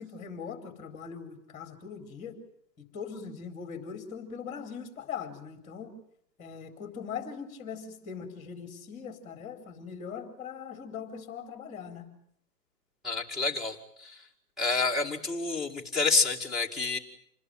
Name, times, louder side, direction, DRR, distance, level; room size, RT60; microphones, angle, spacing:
voice 1, 0.0-2.4 2.9-5.9 6.4-12.1, left 6 dB, 15° left, 7 dB, 4.1 m, -41 dB
voice 2, 13.0-14.2 14.6-17.0, left 4 dB, ahead, -1 dB, 2.3 m, -28 dB
28.0 x 20.5 x 9.4 m, 0.69 s
hypercardioid pair, 145°, 49 cm